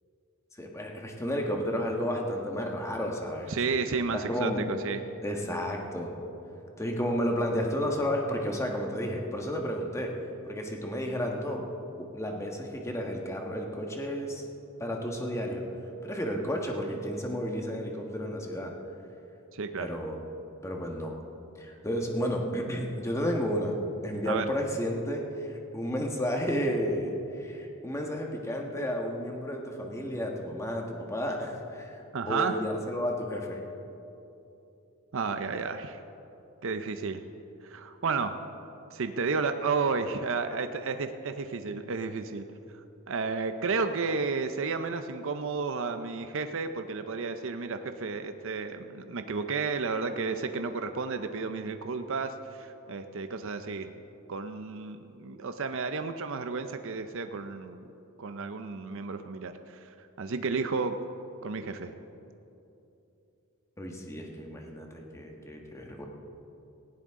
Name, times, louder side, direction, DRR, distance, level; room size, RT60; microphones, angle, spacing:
voice 1, 0.5-3.5 4.1-4.6 5.2-6.2 6.8-10.2 10.4-11.6 12.0-14.4 14.8-15.6 16.0-18.7 19.8-20.2 20.6-21.2 21.5-23.8 24.0-25.5 25.7-32.0 32.3-33.6 63.8-66.1, equal, 15° left, 1 dB, 1.5 m, -32 dB
voice 2, 3.5-5.0 19.5-19.9 24.3-24.5 32.1-32.6 35.1-36.0 36.6-37.2 37.6-38.4 38.9-42.4 43.1-53.9 54.3-57.9 58.2-61.0 61.4-61.9, right 4 dB, 65° right, 8 dB, 0.6 m, -32 dB
18.5 x 16.0 x 3.7 m, 2.9 s
head